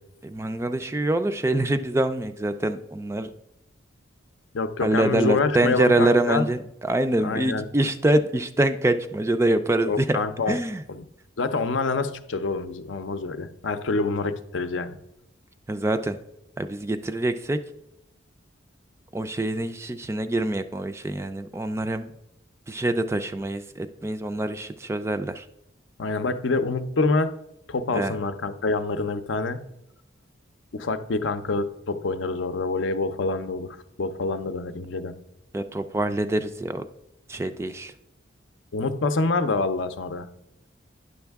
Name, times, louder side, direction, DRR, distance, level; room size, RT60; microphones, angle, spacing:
voice 1, 0.2-3.3 4.8-10.2 10.5-10.8 15.7-16.2 16.6-17.6 19.1-22.1 22.7-25.5 27.9-28.1 35.5-36.9 37.3-37.9, right 1 dB, 15° right, 10 dB, 0.3 m, -25 dB
voice 2, 4.5-6.4 7.2-7.7 9.8-10.6 10.9-11.0 11.4-15.0 26.0-27.3 27.7-29.7 30.7-35.1 38.7-40.3, left 3 dB, 75° left, 10 dB, 0.6 m, -26 dB
9.8 x 6.3 x 3.5 m, 0.82 s
head